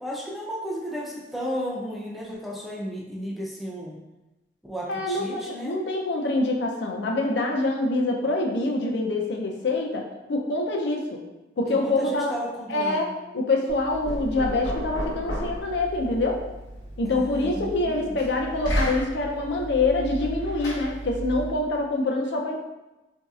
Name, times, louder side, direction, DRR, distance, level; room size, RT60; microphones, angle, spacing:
voice 1, 0.0-4.0 4.7-5.8 11.7-13.1 17.1-18.2, equal, ahead, -4 dB, 0.4 m, -34 dB
voice 2, 4.9-11.2 11.6-12.3 12.7-16.4 17.0-22.6, left 2 dB, 70° left, 0 dB, 0.5 m, -25 dB
Knock, 13.7-21.6, equal, 85° left, 1.0 m, -33 dB
3.9 x 2.7 x 2.4 m, 1.0 s
head